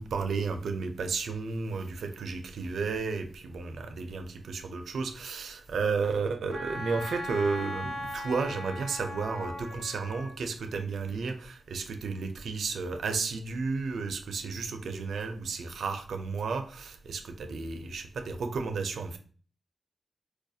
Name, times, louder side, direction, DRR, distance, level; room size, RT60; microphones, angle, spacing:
voice 1, 0.0-19.2, right 4 dB, 85° right, 0.5 m, -33 dB
Wind instrument woodwind instrument, 6.5-10.4, left 1 dB, 70° left, 1.8 m, -38 dB
4.5 x 2.4 x 2.7 m
cardioid pair, 80°, 0 cm